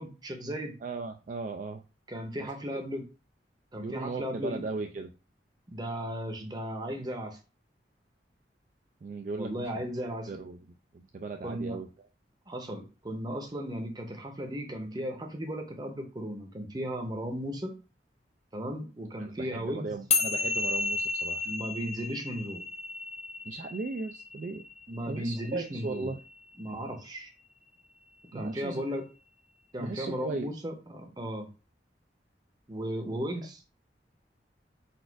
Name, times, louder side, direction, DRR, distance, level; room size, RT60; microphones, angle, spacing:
voice 1, 0.0-0.7 2.1-3.0 3.7-4.6 5.7-7.4 9.4-10.3 11.4-11.8 12.5-17.7 18.5-19.9 21.4-22.6 24.9-26.1 26.6-27.3 28.3-29.0 29.7-31.5 32.7-33.6, equal, 25° right, 4 dB, 0.8 m, -35 dB
voice 2, 0.8-1.8 2.4-2.5 3.8-5.1 9.0-9.7 10.3-10.7 10.9-11.9 19.2-21.5 23.5-24.6 25.1-26.2 28.3-29.0 29.8-30.5, right 3 dB, 45° right, 4 dB, 0.3 m, -37 dB
sound 1, 20.1-26.7, left 4 dB, 40° left, 0.6 m, -33 dB
4.2 x 2.4 x 4.5 m, 0.33 s
head